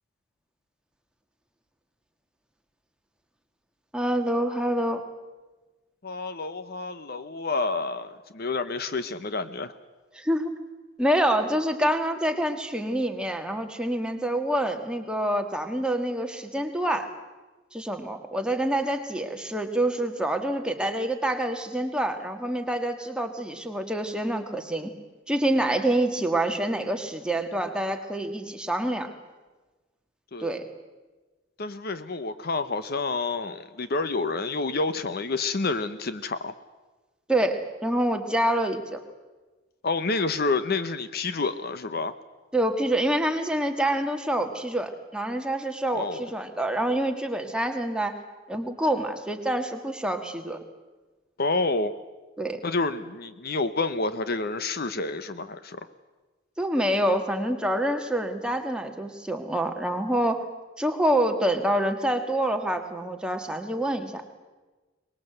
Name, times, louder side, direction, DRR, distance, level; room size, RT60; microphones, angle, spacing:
voice 1, 3.9-5.0 10.1-10.5 11.0-17.1 17.7-24.9 25.3-29.1 30.4-30.6 37.3-39.0 42.5-48.1 48.5-50.6 52.4-52.6 56.6-60.4 60.8-64.2, right 1 dB, 5° right, 4 dB, 1.7 m, -26 dB
voice 2, 6.0-9.7 30.3-30.5 31.6-36.5 39.8-42.1 45.9-46.3 51.4-51.9 52.6-55.9, left 3 dB, 50° left, 12 dB, 0.9 m, -29 dB
23.5 x 20.5 x 7.9 m, 1.2 s
head